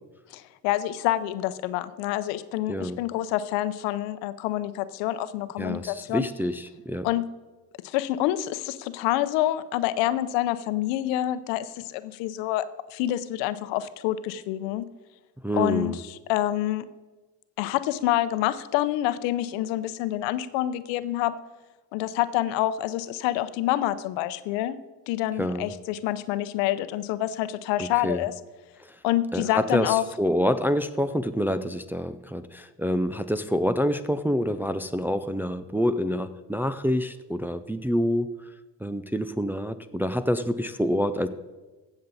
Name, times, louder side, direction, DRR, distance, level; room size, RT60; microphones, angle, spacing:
voice 1, 0.3-6.3 7.0-7.3 7.8-12.6 12.9-14.9 15.5-16.9 17.6-21.3 21.9-24.8 25.1-28.3 29.0-30.0, left 14 dB, 80° left, 14 dB, 0.7 m, -27 dB
voice 2, 2.7-3.0 5.6-7.1 15.4-16.0 25.4-25.7 28.0-28.2 29.3-38.3 38.8-41.3, equal, 5° right, 9 dB, 0.4 m, -27 dB
16.0 x 7.1 x 4.1 m, 1.2 s
supercardioid pair, 90°, 43 cm